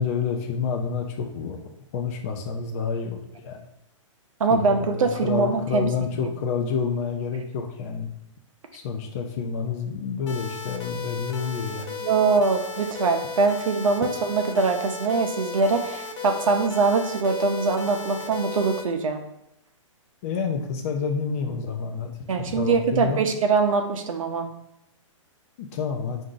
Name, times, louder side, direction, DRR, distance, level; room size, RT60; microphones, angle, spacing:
voice 1, 0.0-1.6 1.9-3.6 4.5-8.1 8.7-12.0 20.2-23.2 25.6-26.2, left 6 dB, 30° left, 2 dB, 0.3 m, -29 dB
voice 2, 4.4-5.9 12.0-19.2 22.3-24.5, right 4 dB, 80° right, 4 dB, 0.6 m, -23 dB
sound 1, 10.3-18.8, left 5 dB, 60° left, 0.8 m, -35 dB
4.6 x 2.6 x 3.7 m, 0.84 s
hypercardioid pair, 155°, 17 cm